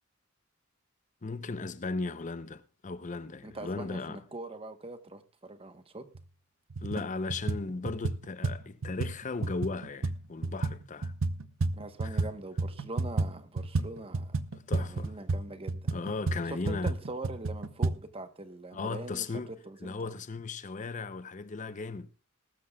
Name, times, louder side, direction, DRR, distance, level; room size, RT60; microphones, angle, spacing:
voice 1, 1.2-4.2 6.8-11.1 12.0-12.3 14.5-15.1 15.9-16.9 18.7-19.5 19.8-22.1, left 3 dB, 35° left, 0.6 m, -36 dB
voice 2, 3.4-6.1 11.7-14.4 14.8-15.9 16.5-19.3 19.6-20.1, right 2 dB, 25° right, 1.0 m, -42 dB
sound 1, 6.2-6.3 6.7-7.0 7.3-12.3 12.6-18.0, right 3 dB, 70° right, 0.7 m, -31 dB
20.5 x 12.5 x 2.3 m
head